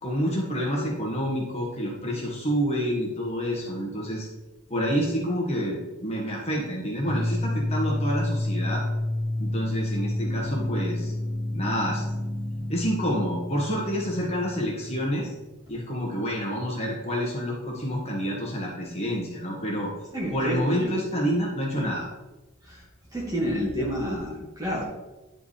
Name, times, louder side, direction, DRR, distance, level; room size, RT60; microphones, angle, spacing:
voice 1, 0.0-4.3 4.7-8.8 9.4-11.1 11.5-12.0 12.7-15.3 15.7-19.9 20.3-22.1, equal, 30° left, -3 dB, 1.5 m, -28 dB
sound 1, 7.0-15.8, left 1 dB, 65° right, 2.1 m, -30 dB
voice 2, 20.1-20.9 21.7-21.9 22.7-22.8 23.1-24.9, equal, 15° right, -4 dB, 1.8 m, -29 dB
10.0 x 5.0 x 3.3 m, 1.1 s
head